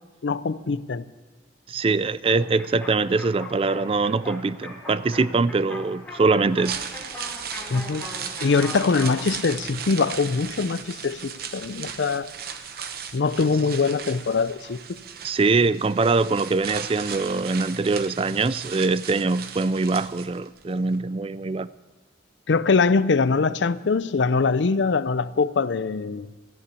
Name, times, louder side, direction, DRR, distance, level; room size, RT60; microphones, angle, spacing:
voice 1, 0.2-1.0 7.7-8.0 8.4-12.3 13.1-15.0 22.5-26.3, left 4 dB, 70° left, 0.5 m, -23 dB
voice 2, 1.7-6.8 15.2-21.7, right 3 dB, 30° right, 0.3 m, -23 dB
sound 1, 2.2-9.2, left 1 dB, 10° left, 2.7 m, -40 dB
sound 2, 6.5-20.6 20.9-21.0, right 7 dB, 50° right, 0.9 m, -37 dB
14.0 x 9.8 x 8.3 m
head